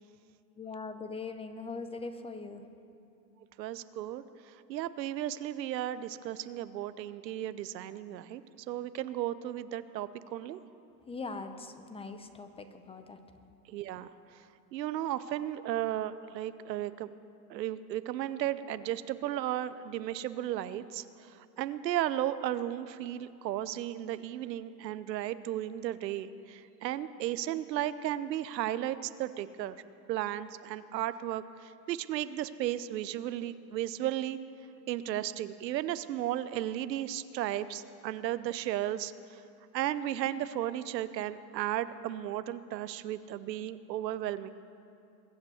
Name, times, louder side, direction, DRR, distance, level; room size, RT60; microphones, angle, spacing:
voice 1, 0.6-2.6 11.1-13.2, left 4 dB, 10° left, 9 dB, 0.6 m, -41 dB
voice 2, 3.6-8.4 8.7-10.6 13.7-14.1 14.7-17.1 17.5-29.8 30.1-34.4 34.9-39.4 39.7-44.5, right 12 dB, 85° right, 14 dB, 0.8 m, -34 dB
22.0 x 8.1 x 7.1 m, 2.6 s
hypercardioid pair, 115°, 49 cm